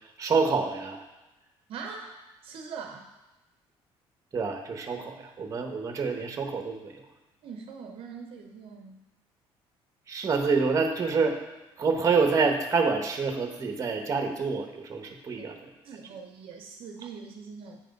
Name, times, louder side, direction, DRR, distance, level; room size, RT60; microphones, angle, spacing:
voice 1, 0.2-1.0 4.3-7.0 10.1-11.4 11.8-15.6, right 4 dB, 30° right, 4 dB, 0.9 m, -27 dB
voice 2, 1.7-3.1 7.4-9.0 15.4-15.5 15.8-17.8, right 5 dB, 60° right, 3 dB, 0.7 m, -42 dB
8.6 x 3.4 x 5.2 m, 1.1 s
cardioid pair, 130°, 11 cm